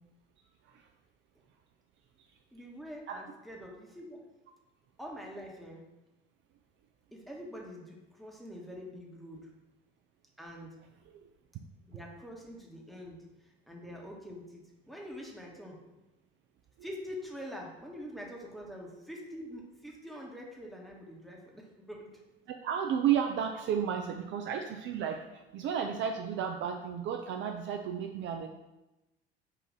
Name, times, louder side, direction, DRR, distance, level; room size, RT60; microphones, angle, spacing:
voice 1, 2.5-4.2 5.0-5.8 7.1-9.5 10.4-10.8 11.9-15.8 16.8-22.2, equal, ahead, -2 dB, 1.0 m, -45 dB
voice 2, 22.5-28.5, right 8 dB, 40° right, 4 dB, 0.4 m, -33 dB
4.0 x 2.6 x 4.7 m, 0.99 s
hypercardioid pair, 65°, 30 cm